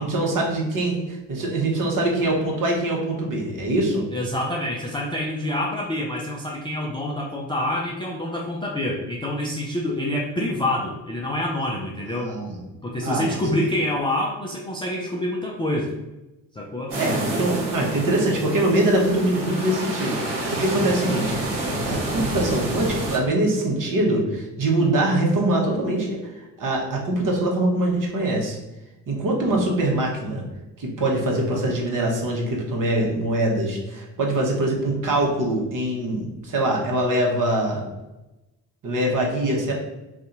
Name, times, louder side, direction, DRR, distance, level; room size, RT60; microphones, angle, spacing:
voice 1, 0.0-4.0 12.1-12.6 13.0-13.4 17.0-21.4 21.9-26.2 26.6-28.6 29.1-30.4 30.8-37.8 38.8-39.7, right 1 dB, 40° right, -1 dB, 1.1 m, -23 dB
voice 2, 4.1-12.3 12.8-15.9 16.5-17.0 29.4-29.8, left 1 dB, 10° left, -2 dB, 0.3 m, -27 dB
sound 1, 16.9-23.2, right 1 dB, 60° right, 1.4 m, -28 dB
2.6 x 2.4 x 3.8 m, 1.0 s
hypercardioid pair, 50°, 48 cm